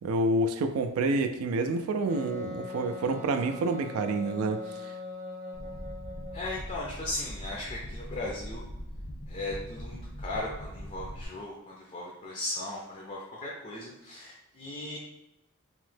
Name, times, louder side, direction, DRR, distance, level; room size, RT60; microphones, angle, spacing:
voice 1, 0.0-4.6, right 2 dB, 80° right, 7 dB, 0.3 m, -28 dB
Wind instrument woodwind instrument, 2.1-6.7, left 3 dB, 35° right, 0.7 m, -41 dB
sound 1, 5.5-11.3, equal, 80° left, 0.9 m, -41 dB
voice 2, 6.3-8.6 9.3-15.0, left 2 dB, 30° left, -3 dB, 0.4 m, -37 dB
3.0 x 2.0 x 3.2 m, 0.91 s
head